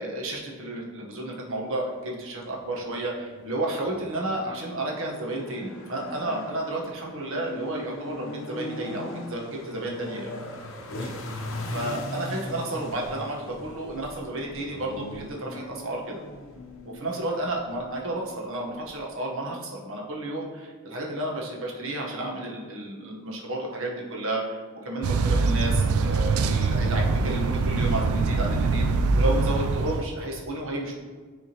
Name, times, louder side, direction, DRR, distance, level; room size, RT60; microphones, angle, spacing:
voice 1, 0.0-11.1 11.7-16.2 16.9-28.9 29.1-30.9, right 1 dB, 65° right, -2 dB, 1.1 m, -32 dB
sound 1, 2.5-19.1, left 1 dB, 65° left, 0.8 m, -40 dB
sound 2, 25.0-30.0, right 3 dB, 90° right, 0.4 m, -23 dB
9.4 x 3.6 x 2.9 m, 1.5 s
head